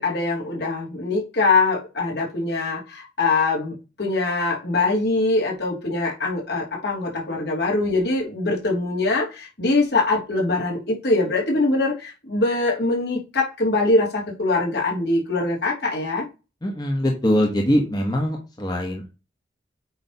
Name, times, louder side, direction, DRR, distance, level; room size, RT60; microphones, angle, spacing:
voice 1, 0.0-16.3, left 3 dB, 65° left, -3 dB, 3.1 m, -23 dB
voice 2, 16.6-19.1, equal, 20° left, 0 dB, 1.4 m, -22 dB
8.7 x 3.4 x 5.5 m, 0.29 s
head